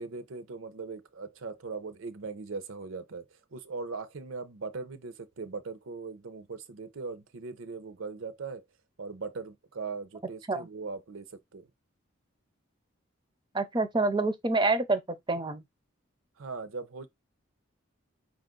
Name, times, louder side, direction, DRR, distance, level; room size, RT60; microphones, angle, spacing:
voice 1, 0.0-3.3 3.5-8.6 9.0-11.7 16.4-17.1, right 4 dB, 75° right, 0.7 m, -39 dB
voice 2, 13.5-15.0 15.3-15.6, right 3 dB, 20° right, 0.4 m, -27 dB
5.1 x 2.4 x 3.7 m
head